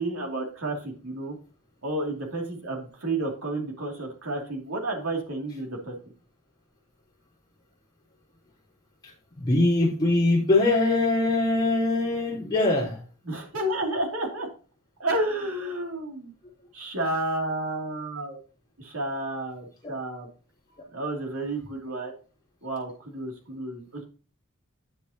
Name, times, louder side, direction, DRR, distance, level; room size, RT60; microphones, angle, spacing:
voice 1, 0.0-1.4 1.8-5.9 13.2-14.5 15.0-16.3 16.7-18.4 18.8-20.3 20.9-22.1 22.6-24.0, right 1 dB, 90° right, 0 dB, 2.8 m, -31 dB
voice 2, 9.4-13.0, left 2 dB, 20° left, -8 dB, 3.8 m, -22 dB
9.6 x 8.3 x 2.9 m, 0.36 s
head